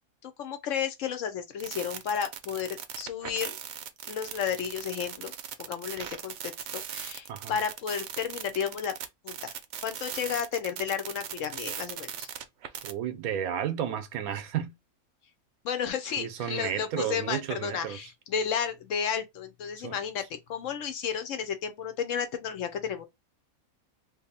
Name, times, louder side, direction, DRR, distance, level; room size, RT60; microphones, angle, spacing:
voice 1, 0.2-2.7 3.0-3.6 4.1-5.3 5.6-8.9 9.2-9.5 9.8-12.3 15.6-20.2 20.5-23.1, left 7 dB, 70° left, 0.9 m, -32 dB
sound 1, 1.6-12.9, right 9 dB, 65° right, 0.8 m, -39 dB
voice 2, 12.8-14.7 16.2-18.0 19.8-20.0, right 9 dB, 90° right, 1.1 m, -32 dB
2.7 x 2.5 x 4.0 m
omnidirectional pair, 1.5 m